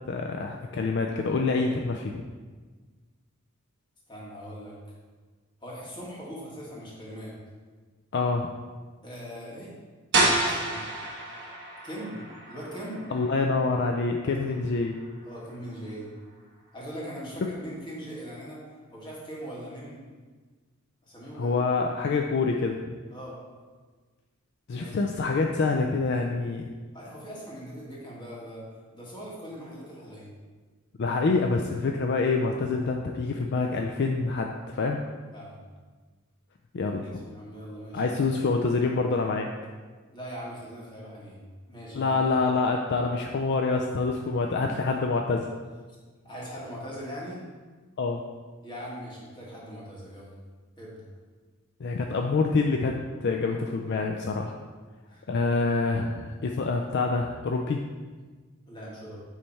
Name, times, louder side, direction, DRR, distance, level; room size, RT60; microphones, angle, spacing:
voice 1, 0.1-2.2 8.1-8.5 13.1-15.0 21.3-22.9 24.7-26.7 31.0-35.0 36.7-37.2 37.9-39.5 41.9-45.5 48.0-48.2 51.8-54.5 55.3-57.8, left 3 dB, 50° left, 2 dB, 0.4 m, -26 dB
voice 2, 4.1-4.7 5.6-7.3 9.0-9.7 10.5-10.8 11.8-12.2 12.5-13.0 14.2-14.6 15.3-16.1 16.7-18.6 18.9-20.0 21.0-21.6 23.1-23.4 24.7-24.9 26.9-28.6 28.9-30.3 35.3-35.6 37.0-38.1 40.1-41.4 41.7-42.2 44.5-44.7 46.2-47.4 48.6-50.3 50.8-51.0 55.1-55.2 58.7-59.2, equal, 20° left, -5 dB, 1.6 m, -40 dB
sound 1, 10.1-15.8, right 2 dB, 55° right, 1.4 m, -30 dB
8.8 x 3.3 x 4.2 m, 1.4 s
head